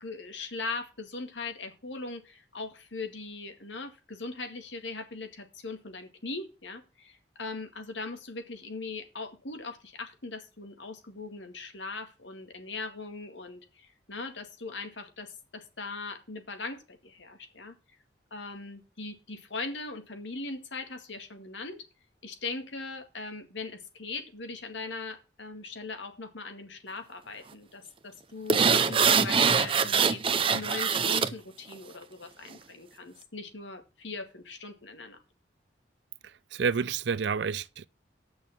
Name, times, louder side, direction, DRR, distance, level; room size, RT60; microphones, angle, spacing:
voice 1, 0.0-17.7 18.3-21.8 22.2-35.2, left 3 dB, 85° left, 2.0 m, -40 dB
sound 1, 28.5-31.3 31.7-31.8, right 6 dB, 30° right, 0.6 m, -23 dB
voice 2, 36.2-37.9, right 6 dB, 75° right, 0.5 m, -30 dB
8.5 x 6.3 x 7.2 m
head